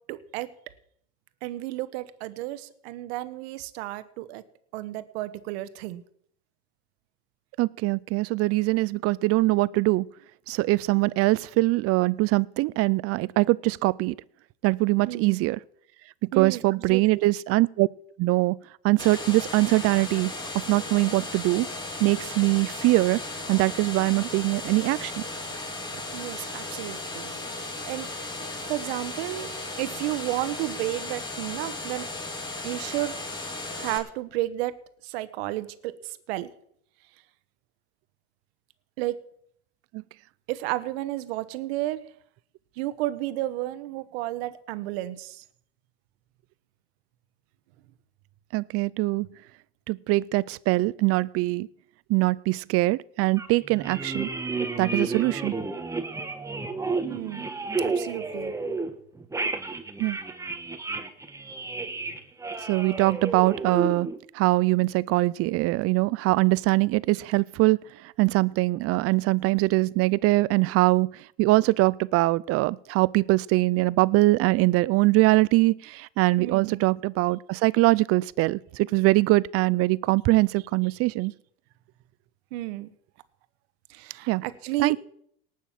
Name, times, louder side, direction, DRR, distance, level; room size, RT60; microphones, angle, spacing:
voice 1, 0.1-0.5 1.4-4.4 4.7-6.0 15.1-15.5 16.3-16.6 16.9-17.2 25.9-28.1 28.7-29.5 29.8-32.1 32.6-33.1 33.8-34.7 35.0-35.9 36.3-36.5 39.0-39.2 40.5-42.0 42.8-45.4 57.0-57.5 57.8-58.5 76.4-76.9 82.5-82.9 83.9-84.9, right 16 dB, 70° right, 1.3 m, -32 dB
voice 2, 7.6-10.1 10.5-14.1 14.6-15.6 16.4-17.9 18.2-18.6 18.8-21.7 22.0-23.2 23.5-25.2 39.9-40.0 48.5-49.3 49.9-51.7 52.1-54.3 54.8-55.5 60.0-60.2 62.6-64.1 64.3-81.3 84.3-84.4 84.8-85.0, right 21 dB, 45° right, 0.5 m, -23 dB
sound 1, 19.0-34.0, left 2 dB, 15° left, 2.9 m, -36 dB
sound 2, 53.4-58.9 59.2-64.2, right 3 dB, 10° right, 1.3 m, -31 dB
18.5 x 6.4 x 7.5 m
supercardioid pair, 105°, 33 cm